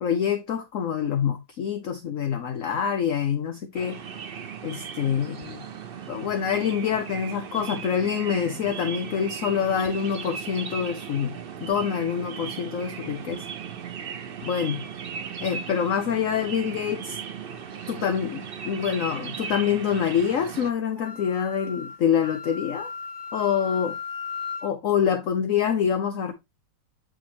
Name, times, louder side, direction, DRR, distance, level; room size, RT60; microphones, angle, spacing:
voice 1, 0.0-4.0 4.6-5.6 6.1-11.3 11.6-13.4 14.4-14.8 15.4-17.2 17.9-22.9 23.3-24.0 24.6-26.3, left 8 dB, 60° left, 0.9 m, -26 dB
sound 1, 3.7-20.7, right 7 dB, 80° right, 0.5 m, -37 dB
Wind instrument woodwind instrument, 20.9-24.7, left 5 dB, 30° left, 3.2 m, -36 dB
7.8 x 5.2 x 2.8 m
omnidirectional pair, 2.0 m